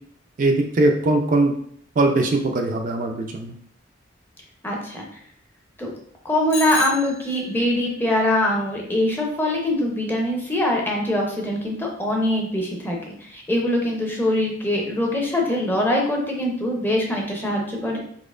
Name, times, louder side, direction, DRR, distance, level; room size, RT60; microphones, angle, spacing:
voice 1, 0.4-1.5 2.0-3.5, right 2 dB, 45° right, 3 dB, 0.4 m, -20 dB
voice 2, 4.6-5.0 5.8-5.9 6.2-18.0, left 1 dB, 10° left, -1 dB, 0.6 m, -23 dB
Bicycle bell, 6.5-7.8, left 2 dB, 75° left, 1.1 m, -33 dB
4.1 x 2.9 x 2.4 m, 0.64 s
head